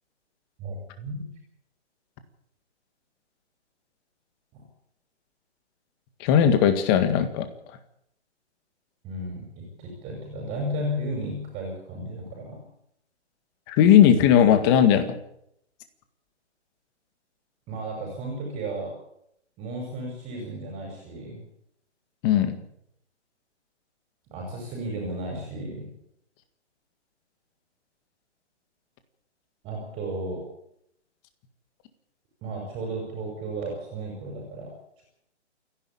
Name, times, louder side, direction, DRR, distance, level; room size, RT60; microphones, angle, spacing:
voice 1, 0.6-1.3 4.5-4.6 9.0-12.6 17.7-19.0 19.6-21.5 24.3-25.9 29.6-30.5 32.4-34.7, right 1 dB, 15° right, 0 dB, 5.6 m, -34 dB
voice 2, 6.2-7.5 13.7-15.2 22.2-22.6, left 9 dB, 20° left, 9 dB, 1.9 m, -18 dB
28.5 x 11.0 x 8.7 m, 0.74 s
hypercardioid pair, 160°, 36 cm